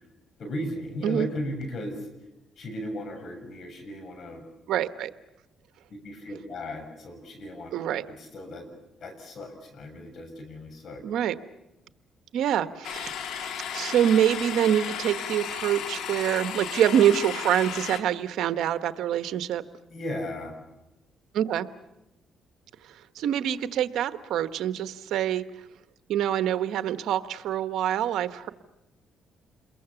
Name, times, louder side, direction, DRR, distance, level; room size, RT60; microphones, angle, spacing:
voice 1, 0.4-2.1 2.6-4.4 5.9-7.7 8.2-8.7 9.0-11.0 19.9-20.5, left 1 dB, 60° left, 7 dB, 6.5 m, -36 dB
voice 2, 4.7-5.1 7.7-8.1 11.0-11.3 12.3-19.6 21.3-21.7 23.1-25.4 26.1-28.5, right 10 dB, 80° right, 11 dB, 1.1 m, -25 dB
sound 1, 12.8-18.0, left 8 dB, 80° left, 2.2 m, -34 dB
28.5 x 22.0 x 7.1 m, 0.95 s
cardioid pair, 90°, 0 cm